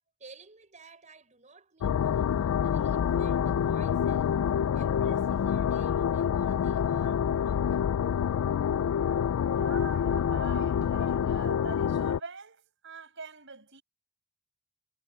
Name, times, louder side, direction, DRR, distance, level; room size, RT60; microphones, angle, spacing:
voice 1, 0.2-4.4 4.7-7.9, right 3 dB, 35° right, 5.0 m, -54 dB
sound 1, 1.8-12.2, left 8 dB, 70° left, 0.3 m, -27 dB
voice 2, 9.5-13.8, right 4 dB, 55° right, 6.3 m, -43 dB
head